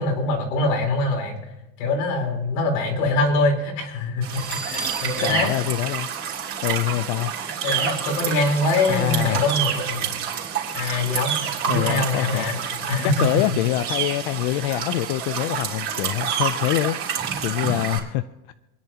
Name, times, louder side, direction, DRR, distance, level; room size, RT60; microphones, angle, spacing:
voice 1, 0.0-1.4 1.8-5.5 7.6-10.1 10.7-13.3, left 2 dB, 75° left, 1 dB, 4.1 m, -24 dB
sound 1, 4.2-18.0, right 8 dB, 35° right, 3.5 m, -28 dB
Bell, 4.3-7.0, right 2 dB, 20° left, 2.8 m, -37 dB
voice 2, 5.2-6.1 6.6-7.3 8.9-9.4 11.6-18.5, left 15 dB, 55° left, 12 dB, 0.6 m, -25 dB
28.0 x 10.5 x 2.9 m, 0.99 s
cardioid pair, 175°, 38 cm